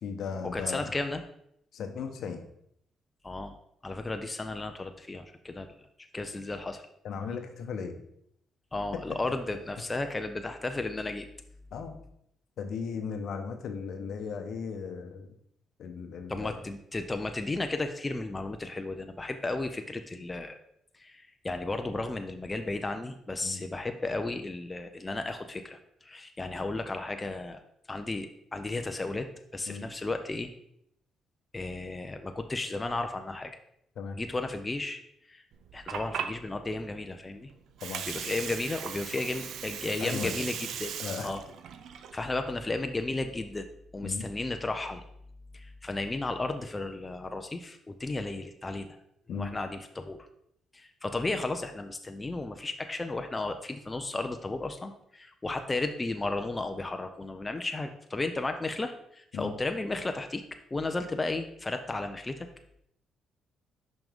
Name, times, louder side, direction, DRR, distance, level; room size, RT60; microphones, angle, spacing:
voice 1, 0.0-0.9 1.7-2.5 7.0-7.9 11.7-12.0 12.6-15.3 15.8-16.6 23.4-23.6 29.7-29.8 34.0-34.2 37.8-38.0 40.0-40.3 41.0-41.3 44.0-44.3 49.3-49.5 59.3-59.5, left 6 dB, 70° left, 6 dB, 0.8 m, -36 dB
voice 2, 0.5-1.2 3.2-3.5 3.8-5.7 6.1-6.9 8.7-11.3 16.3-20.6 21.0-27.6 27.9-29.3 29.5-30.5 31.5-33.5 34.1-35.0 35.3-35.4 35.7-37.5 38.1-40.9 41.2-41.4 42.1-43.7 43.9-45.0 45.5-49.0 49.3-50.3 50.7-60.4 60.7-62.5, left 2 dB, 20° left, 6 dB, 0.5 m, -34 dB
Water, 35.5-43.5, right 8 dB, 75° right, 0.5 m, -39 dB
5.8 x 5.2 x 3.6 m, 0.73 s
cardioid pair, 90°, 0 cm